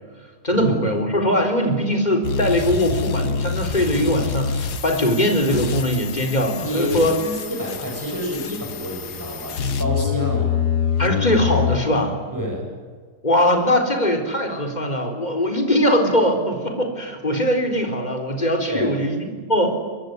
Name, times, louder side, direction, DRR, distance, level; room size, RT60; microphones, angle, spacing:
voice 1, 0.4-7.2 11.0-12.2 13.2-19.8, equal, 25° left, 5 dB, 4.3 m, -21 dB
sound 1, 2.2-11.8, left 7 dB, 75° left, 1.8 m, -26 dB
voice 2, 6.6-10.5 12.3-12.6 18.6-18.9, equal, 10° right, 0 dB, 8.1 m, -28 dB
24.0 x 22.5 x 9.5 m, 1.5 s
omnidirectional pair, 1.7 m